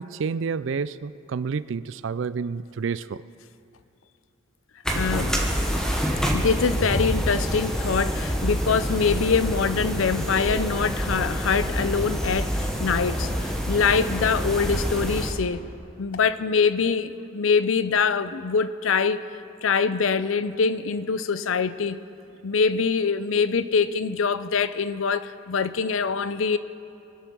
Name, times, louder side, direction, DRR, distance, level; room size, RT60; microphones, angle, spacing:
voice 1, 0.0-3.2, right 5 dB, 70° right, 0.4 m, -29 dB
sound 1, 4.8-15.3, equal, 5° left, 1.2 m, -27 dB
voice 2, 4.9-5.6 6.3-15.6 16.0-19.2 19.6-22.0 22.4-26.6, left 5 dB, 85° left, 0.6 m, -24 dB
23.5 x 8.1 x 6.2 m
head